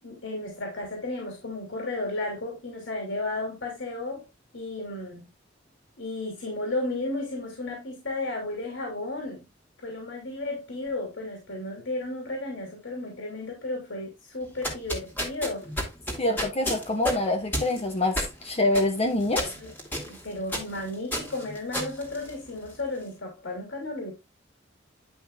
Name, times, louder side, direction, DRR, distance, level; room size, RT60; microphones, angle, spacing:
voice 1, 0.0-4.3 4.5-5.3 6.0-9.4 9.8-15.7 19.3-19.7 20.0-24.1, left 2 dB, 80° left, 2.8 m, -33 dB
sound 1, 14.4-22.8, equal, 10° left, 2.2 m, -33 dB
voice 2, 16.2-18.2 18.4-19.5, left 2 dB, 35° left, 1.1 m, -25 dB
10.5 x 5.5 x 2.4 m
head